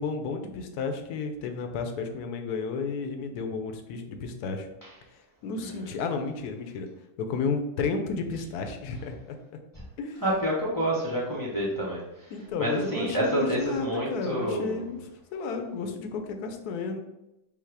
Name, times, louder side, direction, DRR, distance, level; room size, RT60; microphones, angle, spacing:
voice 1, 0.0-4.7 5.4-6.9 7.2-9.4 10.0-10.2 12.3-15.0 15.3-17.0, left 4 dB, 70° left, 5 dB, 1.0 m, -32 dB
voice 2, 5.6-5.9 10.2-12.3 12.6-14.9, right 1 dB, 25° left, -6 dB, 0.4 m, -29 dB
5.5 x 2.0 x 4.6 m, 0.93 s
omnidirectional pair, 1.9 m